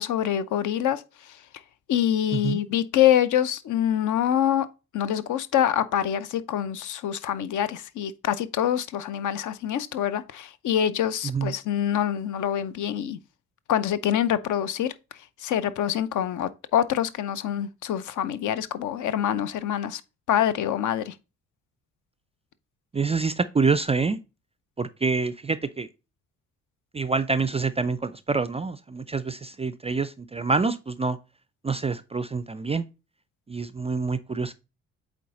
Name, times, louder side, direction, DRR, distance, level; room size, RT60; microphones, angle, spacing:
voice 1, 0.0-1.4 1.9-4.7 4.9-13.2 13.7-14.9 15.4-20.0 20.3-21.1, left 10 dB, 50° left, 0.6 m, -25 dB
voice 2, 22.9-24.2 24.8-25.9 26.9-31.2 31.6-32.8 33.5-34.5, right 4 dB, 15° right, 0.4 m, -26 dB
8.4 x 3.5 x 4.0 m
figure-of-eight pair, 40°, 40 cm